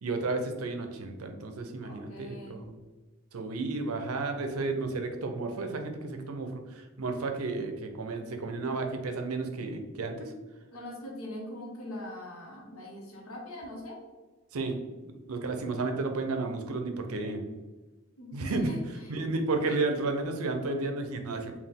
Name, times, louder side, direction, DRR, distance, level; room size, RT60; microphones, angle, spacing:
voice 1, 0.0-2.7 3.3-10.3 14.5-14.8 15.1-17.4 18.3-18.7 19.1-21.5, right 3 dB, 90° right, 5 dB, 0.6 m, -32 dB
voice 2, 1.8-2.6 10.7-14.0 18.2-18.8, left 1 dB, 85° left, -1 dB, 1.1 m, -42 dB
4.0 x 2.3 x 3.5 m, 1.2 s
head